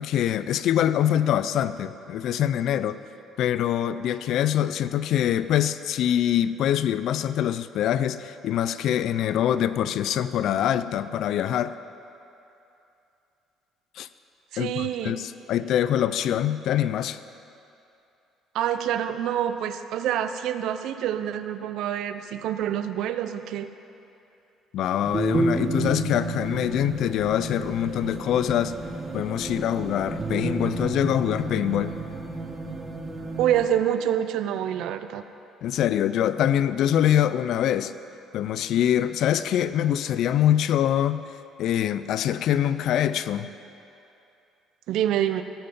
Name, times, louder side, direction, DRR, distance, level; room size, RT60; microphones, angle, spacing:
voice 1, 0.0-3.0 3.4-11.7 14.0-14.1 14.6-17.2 24.7-28.7 29.1-31.9 35.6-37.9 38.3-41.3 41.6-43.5, left 10 dB, 65° left, 14 dB, 0.3 m, -24 dB
voice 2, 14.5-15.2 18.5-23.7 33.4-35.2 44.9-45.4, right 10 dB, 70° right, 11 dB, 0.5 m, -26 dB
sound 1, 25.0-33.7, right 3 dB, 20° right, 1.0 m, -31 dB
15.5 x 5.6 x 5.4 m, 2.8 s
cardioid pair, 135°, 0 cm